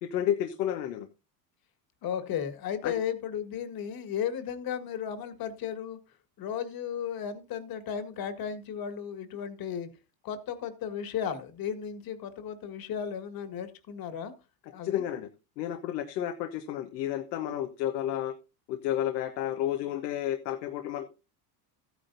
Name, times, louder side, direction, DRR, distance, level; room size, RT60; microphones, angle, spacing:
voice 1, 0.0-1.1 2.8-2.9 14.8-15.3 15.6-18.3 18.7-21.1, left 11 dB, 85° left, 1.2 m, -31 dB
voice 2, 2.0-6.0 6.4-9.9 10.2-14.3 14.7-15.0, left 8 dB, 45° left, 1.9 m, -35 dB
13.5 x 9.8 x 2.6 m
supercardioid pair, 100°, 48 cm